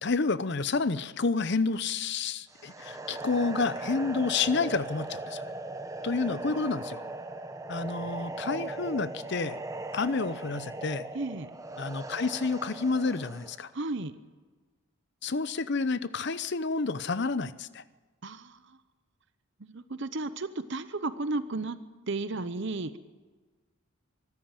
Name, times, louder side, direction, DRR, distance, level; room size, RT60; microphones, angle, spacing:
voice 1, 0.0-5.4 6.0-7.0 7.7-9.6 9.9-11.0 11.8-13.7 15.2-17.8, left 4 dB, 50° left, 15 dB, 0.7 m, -29 dB
sound 1, 2.5-13.6, right 2 dB, 15° right, 0.9 m, -39 dB
voice 2, 11.1-11.5 13.7-14.1 18.2-18.6 19.7-21.8 22.1-23.0, right 3 dB, 55° right, 12 dB, 0.8 m, -33 dB
24.5 x 13.0 x 9.0 m, 1.3 s
head